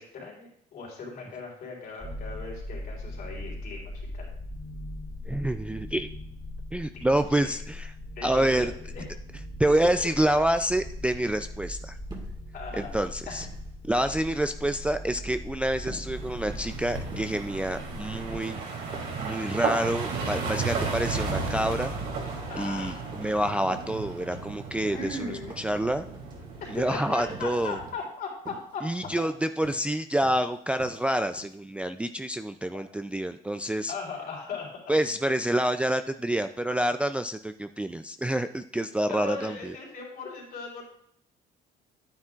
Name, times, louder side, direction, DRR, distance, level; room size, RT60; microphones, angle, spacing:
voice 1, 0.0-4.3 6.9-7.0 7.3-7.6 8.1-9.1 9.6-10.1 11.0-11.3 12.5-13.0 13.3-13.5 20.3-20.5 22.5-23.0 24.9-25.6 26.6-29.1 32.7-32.9 33.9-34.8 39.1-40.8, left 4 dB, 60° left, -2 dB, 3.7 m, -38 dB
sound 1, 2.0-18.4, left 1 dB, 25° left, 2.5 m, -40 dB
voice 2, 5.3-6.1 6.7-7.9 8.2-8.7 9.6-12.0 12.8-13.5 13.8-18.6 19.2-21.9 22.6-22.9 23.2-25.2 25.6-26.1 26.7-27.8 28.8-33.9 34.9-39.7, right 1 dB, 5° right, 8 dB, 0.3 m, -27 dB
sound 2, 12.1-12.4 12.7-13.1 13.3-14.2 14.5-14.9 15.2-15.5 15.9-16.1 16.5-16.8 17.1-17.4 17.7-18.0 18.3-18.6 18.9-19.8 20.1-20.4 20.7-20.9 21.4-21.6 21.9-22.2 22.5-22.8 23.1-23.4 23.7-24.0 24.3-24.5 24.9-25.1 25.5-25.8 26.1-26.4 26.7-26.9 27.3-27.6 27.9-28.1 28.4-28.7 29.0-29.3 29.6-29.9 30.2-30.4 30.8-31.1 31.4-31.5, right 2 dB, 25° right, 1.8 m, -45 dB
sound 3, 16.1-27.9, right 4 dB, 80° right, 3.0 m, -34 dB
9.5 x 9.0 x 2.4 m, 0.69 s
cardioid pair, 110°, 17 cm